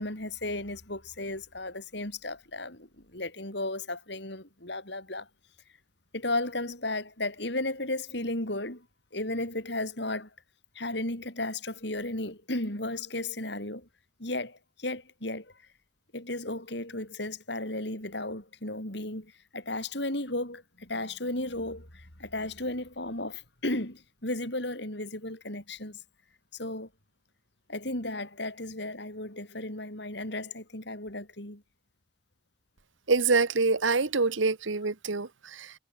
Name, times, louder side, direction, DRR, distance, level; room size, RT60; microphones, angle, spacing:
voice 1, 0.0-5.3 6.1-8.9 9.1-10.3 10.8-13.9 14.2-15.5 16.1-26.0 26.5-26.9 27.7-31.6, left 2 dB, 60° left, 5.5 m, -34 dB
voice 2, 33.1-35.7, right 4 dB, 75° right, 1.2 m, -26 dB
head